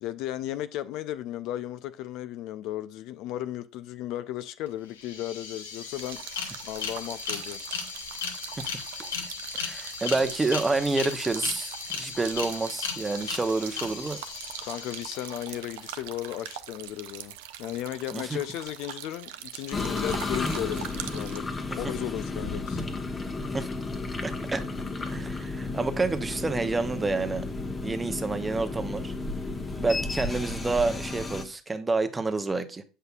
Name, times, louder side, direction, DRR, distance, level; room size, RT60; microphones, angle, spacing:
voice 1, 0.0-6.2 6.6-7.6 14.6-21.5 21.7-22.8, left 13 dB, 55° left, 0.4 m, -35 dB
sound 1, 4.7-4.8 4.9-15.7, left 6 dB, 75° left, 0.9 m, -36 dB
sound 2, 6.0-21.4, right 11 dB, 70° right, 0.5 m, -42 dB
voice 2, 9.5-14.2 18.1-18.4 23.5-23.7 24.2-24.6 25.1-27.4 27.8-29.1 29.8-32.8, right 3 dB, 15° right, 0.8 m, -28 dB
sound 3, 19.7-31.5, left 3 dB, 20° left, 1.0 m, -33 dB
7.9 x 5.6 x 2.3 m
figure-of-eight pair, 65°, 0 cm